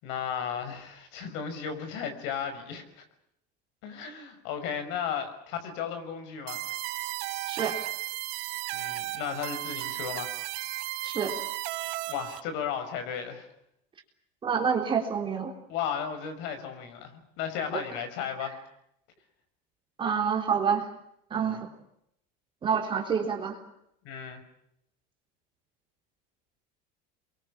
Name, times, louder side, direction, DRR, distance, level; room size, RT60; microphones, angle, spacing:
voice 1, 0.0-3.0 3.8-6.6 8.7-10.3 12.1-13.5 15.7-18.6 21.4-21.7 24.0-24.4, left 7 dB, 60° left, 8 dB, 5.9 m, -35 dB
sound 1, 6.5-12.4, right 19 dB, 65° right, 1.5 m, -34 dB
voice 2, 7.5-7.8 11.0-11.3 14.4-15.5 17.7-17.8 20.0-20.9 21.3-21.7 22.6-23.6, right 6 dB, 25° right, 2 dB, 3.7 m, -27 dB
28.0 x 23.0 x 7.3 m, 0.77 s
supercardioid pair, 145°, 21 cm